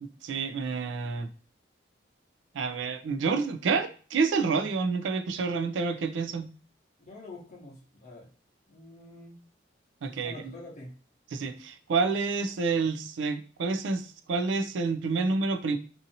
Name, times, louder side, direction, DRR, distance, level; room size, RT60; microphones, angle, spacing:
voice 1, 0.0-1.3 2.5-6.5 10.0-10.6 11.3-15.8, right 4 dB, 80° right, 8 dB, 0.4 m, -29 dB
voice 2, 7.1-8.3 8.7-9.4 10.2-10.9, left 2 dB, 40° left, -4 dB, 0.8 m, -46 dB
2.7 x 2.6 x 2.6 m, 0.41 s
head